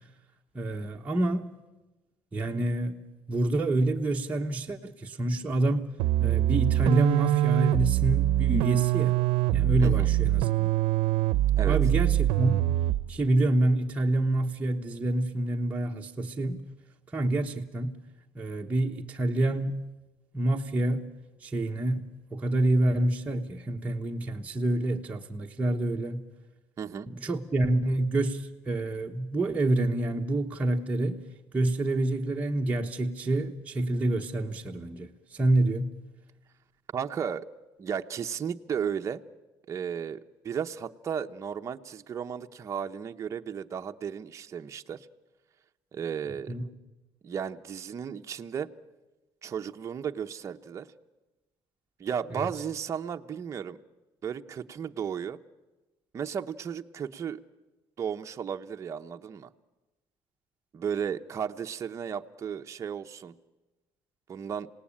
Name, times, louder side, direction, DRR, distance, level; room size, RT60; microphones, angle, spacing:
voice 1, 0.5-1.5 2.3-3.0 3.3-5.9 6.2-9.2 9.5-10.7 11.6-12.8 13.1-16.6 17.1-18.0 18.3-19.8 20.3-21.1 21.4-26.3 27.1-31.2 31.5-36.0 46.5-46.7 52.4-52.5, right 1 dB, 15° right, 1.2 m, -27 dB
sound 1, 6.0-13.2, right 14 dB, 75° right, 0.7 m, -24 dB
voice 2, 26.8-27.1 36.9-37.5 37.8-39.2 39.7-40.2 40.4-45.1 45.9-46.5 47.2-48.7 49.4-50.9 52.0-53.8 54.2-55.4 56.1-57.4 58.0-59.5 60.7-63.3 64.3-64.7, right 7 dB, 35° right, 0.8 m, -34 dB
27.0 x 18.5 x 8.7 m
cardioid pair, 135°, 9 cm